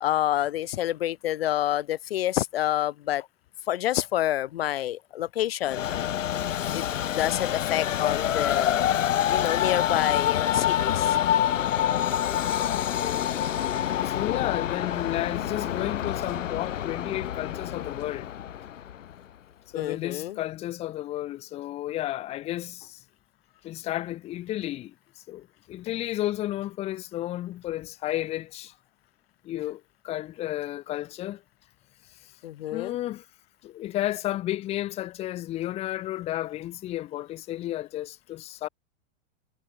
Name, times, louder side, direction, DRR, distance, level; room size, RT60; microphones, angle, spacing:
voice 1, 0.0-3.2 3.7-6.1 6.7-6.8 7.2-8.9 9.3-11.2 19.7-20.4 32.4-33.0, left 13 dB, 50° left, 2.1 m, -28 dB
Train, 5.6-19.1, left 10 dB, 70° left, 4.5 m, -27 dB
voice 2, 12.7-13.3 14.0-18.3 19.7-23.0 23.6-24.9 25.3-28.7 29.4-31.4 32.7-33.2 33.6-38.7, left 14 dB, 15° left, 2.2 m, -32 dB
supercardioid pair, 180°, 39 cm